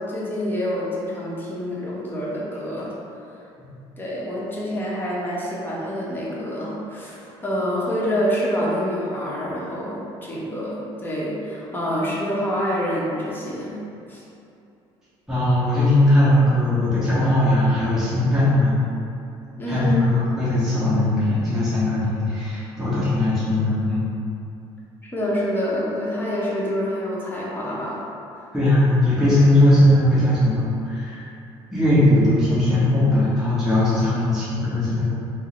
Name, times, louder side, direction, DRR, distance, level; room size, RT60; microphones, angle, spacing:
voice 1, 0.0-2.9 4.0-13.8 14.1-14.2 19.6-20.2 25.0-28.0, equal, 15° left, -6 dB, 0.9 m, -27 dB
voice 2, 15.3-18.8 19.7-24.1 28.5-31.3 31.7-35.0, left 1 dB, 5° right, -13 dB, 1.2 m, -19 dB
3.6 x 2.0 x 3.0 m, 2.7 s
supercardioid pair, 85°, 13 cm